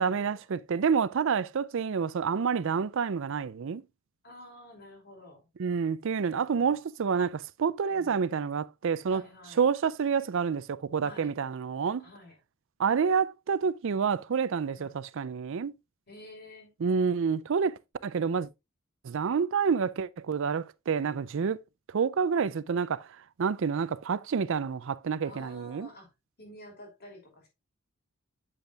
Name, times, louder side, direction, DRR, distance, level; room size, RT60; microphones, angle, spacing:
voice 1, 0.0-3.8 5.6-9.2 9.6-12.0 12.8-15.7 16.8-18.5 19.0-21.6 21.9-23.1 23.4-25.9, right 6 dB, 65° right, 0.4 m, -28 dB
voice 2, 4.2-5.5 6.2-6.7 7.9-8.2 9.1-9.6 11.0-11.3 12.0-12.4 14.7-15.0 16.1-16.7 25.2-26.1 26.4-27.5, left 1 dB, 50° left, 5.4 m, -50 dB
8.5 x 8.0 x 2.3 m
head